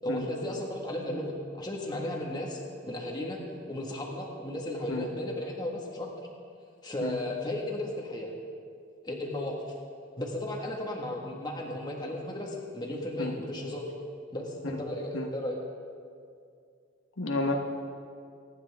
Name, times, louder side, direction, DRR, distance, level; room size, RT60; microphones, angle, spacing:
voice 1, 0.0-3.4 3.7-6.1 6.8-8.3 9.0-9.6 10.2-13.9 14.3-15.6, left 1 dB, 20° left, -1 dB, 1.7 m, -35 dB
voice 2, 17.2-17.5, left 2 dB, 80° left, 2 dB, 1.3 m, -31 dB
24.0 x 10.0 x 3.6 m, 2.3 s
head